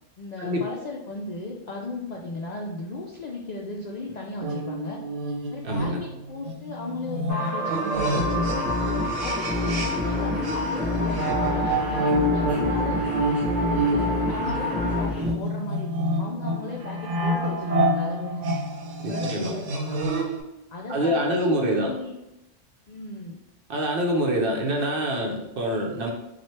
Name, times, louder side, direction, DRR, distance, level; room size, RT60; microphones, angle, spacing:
voice 1, 0.2-5.0 5.5-8.8 9.2-13.4 13.8-18.6 19.1-20.0 20.7-22.2 22.9-23.4, left 2 dB, 70° left, -1 dB, 0.4 m, -36 dB
sound 1, 4.4-10.2 10.4-20.4, right 1 dB, 85° right, 0.9 m, -28 dB
voice 2, 5.6-6.0 9.8-10.0 19.0-19.5 20.9-21.9 23.7-26.1, equal, 55° right, 0 dB, 0.7 m, -26 dB
sound 2, 7.3-15.0, equal, 35° right, 1.1 m, -31 dB
sound 3, 7.9-15.3, left 2 dB, ahead, 0.7 m, -28 dB
3.1 x 2.4 x 4.2 m, 0.91 s
omnidirectional pair, 1.3 m